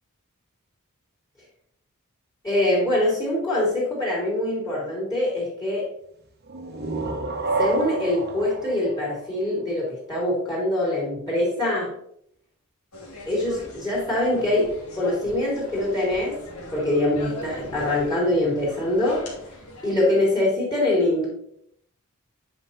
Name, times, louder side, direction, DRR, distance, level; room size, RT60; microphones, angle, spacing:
voice 1, 2.4-5.9 7.6-12.0 13.3-16.4 16.7-19.3 19.8-21.3, left 1 dB, 15° left, -6 dB, 3.4 m, -24 dB
sound 1, 6.5-10.0, right 3 dB, 45° right, 1.2 m, -29 dB
sound 2, 12.9-19.9, left 1 dB, 80° left, 2.8 m, -40 dB
9.4 x 5.3 x 4.3 m, 0.69 s
head